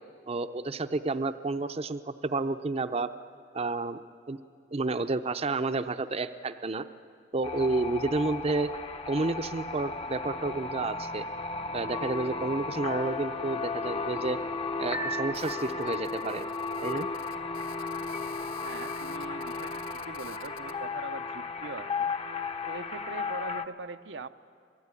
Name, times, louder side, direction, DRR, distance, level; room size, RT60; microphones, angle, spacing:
voice 1, 0.3-3.1 3.5-4.0 4.3-4.4 4.7-6.9 7.3-8.7 9.1-11.3 11.7-14.4 14.8-16.5 16.8-17.1, right 3 dB, 35° right, 10 dB, 0.6 m, -30 dB
sound 1, 7.4-23.6, left 4 dB, 35° left, 0.9 m, -34 dB
Telephone, 15.3-20.8, left 4 dB, 55° left, 1.2 m, -49 dB
voice 2, 18.6-22.1 22.7-24.3, right 3 dB, 85° right, 8 dB, 0.8 m, -42 dB
26.5 x 19.0 x 9.7 m, 2.4 s
head